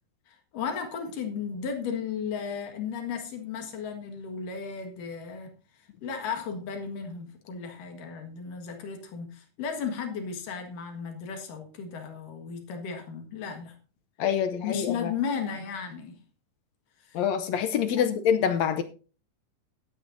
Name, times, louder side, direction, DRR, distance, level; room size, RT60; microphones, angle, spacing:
voice 1, 0.3-5.6 6.0-13.8 14.6-16.2 17.0-17.2, left 6 dB, 85° left, 3.4 m, -35 dB
voice 2, 14.2-15.1 17.1-18.8, left 8 dB, 70° left, 1.8 m, -26 dB
17.5 x 9.0 x 2.6 m
omnidirectional pair, 3.7 m